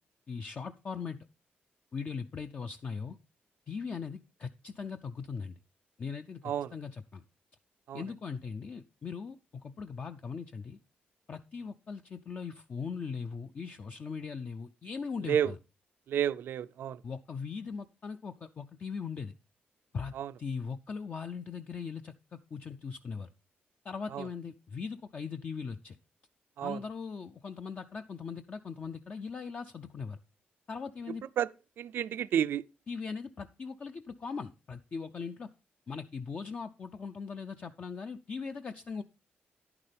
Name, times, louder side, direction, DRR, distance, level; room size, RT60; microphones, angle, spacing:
voice 1, 0.3-1.2 1.9-3.2 3.7-5.5 6.0-7.2 7.9-10.8 11.3-15.6 17.0-19.3 19.9-23.3 23.8-26.0 26.6-30.2 30.7-31.2 32.9-35.5 35.9-39.0, left 5 dB, 40° left, 0.5 m, -40 dB
voice 2, 16.1-17.0 20.2-20.3 24.1-24.2 26.6-26.8 31.4-31.5 31.8-32.6, right 9 dB, 75° right, 0.5 m, -30 dB
11.0 x 9.7 x 3.4 m
wide cardioid pair, 135°, 4 cm